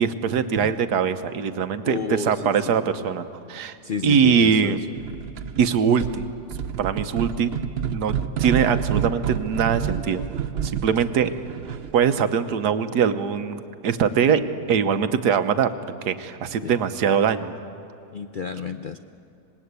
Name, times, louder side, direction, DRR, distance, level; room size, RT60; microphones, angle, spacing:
voice 1, 0.0-3.8 4.0-4.8 5.6-6.3 6.8-7.5 7.9-10.2 10.6-11.3 11.9-14.4 14.7-15.7 16.1-17.5, right 7 dB, 80° right, 10 dB, 1.5 m, -22 dB
voice 2, 1.8-2.7 3.8-4.8 16.6-16.8 18.1-19.0, left 6 dB, 75° left, 8 dB, 0.4 m, -31 dB
sound 1, 5.0-5.7 6.0-12.0, right 8 dB, 55° right, 0.7 m, -29 dB
26.5 x 19.5 x 8.2 m, 2.7 s
omnidirectional pair, 1.7 m